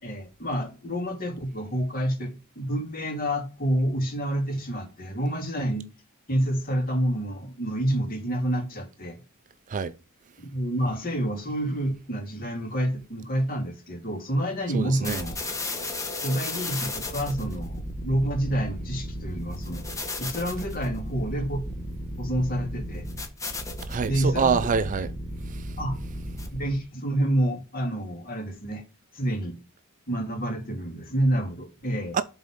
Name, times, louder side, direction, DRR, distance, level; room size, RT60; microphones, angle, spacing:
voice 1, 0.0-5.9 6.3-9.2 10.5-15.4 16.2-19.8 20.2-21.6 22.2-23.1 24.1-24.6 25.8-26.0 26.5-28.8 29.1-29.6 30.1-32.2, right 1 dB, 40° left, 2.8 m, -28 dB
voice 2, 14.7-15.3 23.8-25.1 25.4-25.8 32.1-32.2, right 5 dB, 35° right, 0.4 m, -26 dB
sound 1, 15.0-26.8, left 1 dB, 15° left, 1.4 m, -34 dB
8.0 x 4.0 x 5.1 m
head